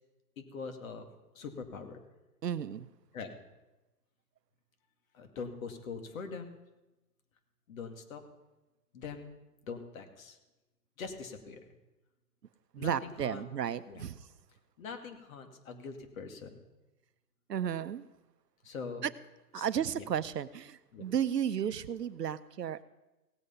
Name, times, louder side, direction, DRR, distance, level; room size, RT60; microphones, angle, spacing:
voice 1, 0.4-1.1 1.3-2.0 3.1-3.4 5.1-6.6 7.7-8.2 8.9-9.4 9.6-10.4 11.0-11.6 12.8-13.5 13.9-14.1 14.8-16.6 18.6-19.0 19.6-19.7 19.9-20.1 20.9-21.0, left 5 dB, 55° left, 2.3 m, -43 dB
voice 2, 2.4-2.9 12.7-14.3 17.5-18.0 19.0-19.1 19.5-22.8, right 9 dB, 90° right, 0.8 m, -33 dB
17.0 x 8.2 x 5.6 m
hypercardioid pair, 140°, 47 cm